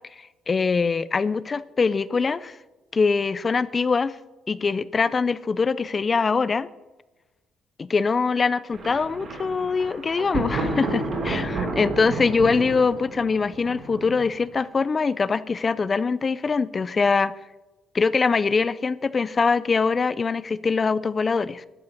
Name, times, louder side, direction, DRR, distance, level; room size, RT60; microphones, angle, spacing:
voice 1, 0.5-2.6 2.9-4.2 4.5-6.7 7.8-17.3 17.9-21.7, left 4 dB, 25° left, 18 dB, 0.4 m, -23 dB
Thunder, 8.7-14.5, right 2 dB, 45° right, 3.5 m, -31 dB
12.5 x 8.3 x 6.5 m, 1.1 s
cardioid pair, 145°, 0 cm